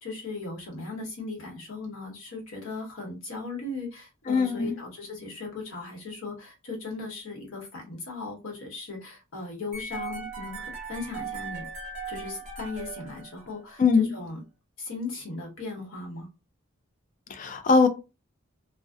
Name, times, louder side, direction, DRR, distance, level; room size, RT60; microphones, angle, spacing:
voice 1, 0.0-11.7 12.1-14.4 14.8-16.3, left 3 dB, 75° left, 1.0 m, -37 dB
voice 2, 4.3-4.8 13.8-14.1 17.3-17.9, left 4 dB, 35° left, 0.3 m, -21 dB
sound 1, 9.7-13.8, right 5 dB, 30° right, 0.6 m, -38 dB
2.6 x 2.1 x 2.3 m
head